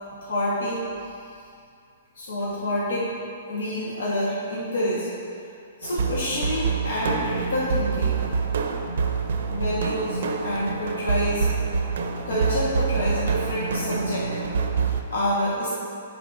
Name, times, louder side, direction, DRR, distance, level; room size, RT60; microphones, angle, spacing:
voice 1, 0.2-0.8 2.1-3.0 3.5-5.1 5.8-8.1 9.5-11.5 12.3-14.3 15.1-15.7, left 1 dB, 80° left, -8 dB, 1.4 m, -27 dB
sound 1, 5.8-15.0, right 5 dB, 65° right, 0.5 m, -26 dB
9.7 x 4.3 x 2.6 m, 2.5 s
hypercardioid pair, 170°, 0 cm